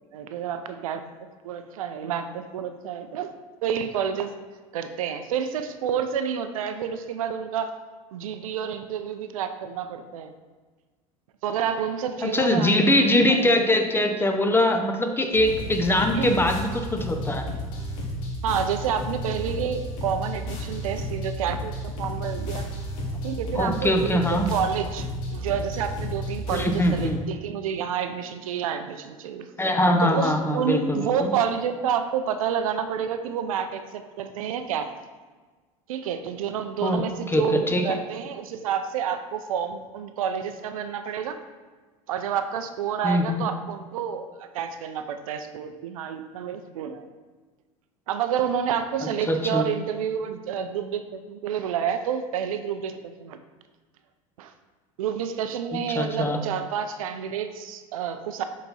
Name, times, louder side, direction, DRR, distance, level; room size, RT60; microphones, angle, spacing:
voice 1, 0.1-1.0 1.4-3.3 3.6-4.3 4.7-7.7 8.1-10.3 11.4-13.4 16.1-16.4 18.4-22.7 23.2-29.5 30.0-34.9 35.9-41.4 42.1-47.1 48.1-53.4 54.4-54.5 55.0-58.4, right 8 dB, 75° right, 9 dB, 0.5 m, -29 dB
voice 2, 12.2-17.5 23.6-24.5 26.5-27.2 29.6-31.3 36.8-38.0 43.0-43.4 49.0-49.6 55.7-56.4, left 1 dB, 10° left, 5 dB, 0.7 m, -23 dB
sound 1, 15.3-27.1, equal, 65° left, 1.6 m, -32 dB
6.6 x 4.1 x 4.1 m, 1.4 s
hypercardioid pair, 80°, 18 cm